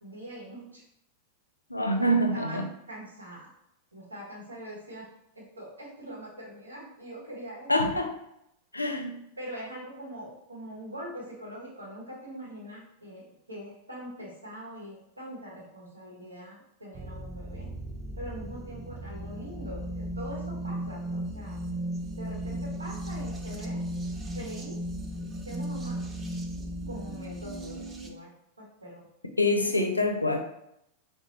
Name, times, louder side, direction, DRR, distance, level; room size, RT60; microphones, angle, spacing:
voice 1, 0.0-0.8 1.9-2.6 2.9-3.5 3.9-5.1 5.3-7.7 9.4-17.7 18.2-21.6 22.2-23.8 24.3-24.8 25.4-26.0 26.9-28.3 28.6-29.0 29.6-29.8, right 1 dB, 80° right, -5 dB, 1.1 m, -43 dB
voice 2, 1.7-2.7 7.7-8.1 8.7-9.2 29.4-30.4, left 1 dB, 85° left, 4 dB, 0.4 m, -25 dB
sound 1, 16.9-28.1, right 1 dB, 20° right, 0.4 m, -36 dB
3.8 x 2.2 x 3.0 m, 0.80 s
figure-of-eight pair, 90°, 0 cm